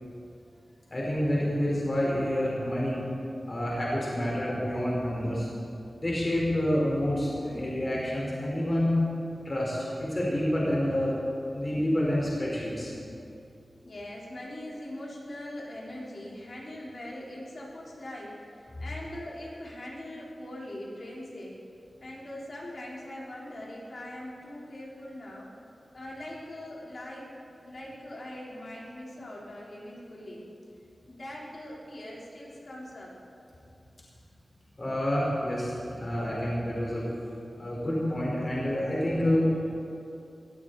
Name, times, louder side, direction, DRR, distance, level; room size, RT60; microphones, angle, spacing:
voice 1, 0.9-3.0 3.5-5.5 6.0-9.0 9.4-11.2 11.5-12.9 34.8-37.1 37.6-39.4, equal, 35° left, -5 dB, 4.0 m, -28 dB
voice 2, 13.8-21.6 22.0-25.5 25.9-27.3 27.6-30.4 31.1-33.1, left 1 dB, 60° left, -5 dB, 3.4 m, -41 dB
20.5 x 13.5 x 4.0 m, 2.6 s
wide cardioid pair, 95°, 0 cm